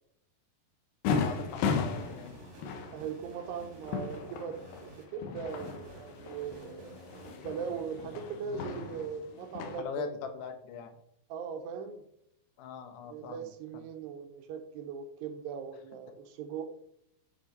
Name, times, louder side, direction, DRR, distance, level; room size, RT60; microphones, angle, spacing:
voice 1, 1.1-2.4 8.4-8.9 9.8-11.0 12.6-13.4, left 7 dB, 85° left, 6 dB, 3.3 m, -41 dB
sound 1, 1.1-9.8, left 5 dB, 70° left, 2.4 m, -36 dB
sound 2, 1.1-5.0 5.5-8.0, right 2 dB, 35° right, 1.5 m, -53 dB
voice 2, 2.9-10.1 11.3-12.0 13.1-16.8, right 6 dB, 85° right, 5 dB, 3.1 m, -40 dB
10.5 x 4.4 x 5.4 m, 0.74 s
omnidirectional pair, 4.7 m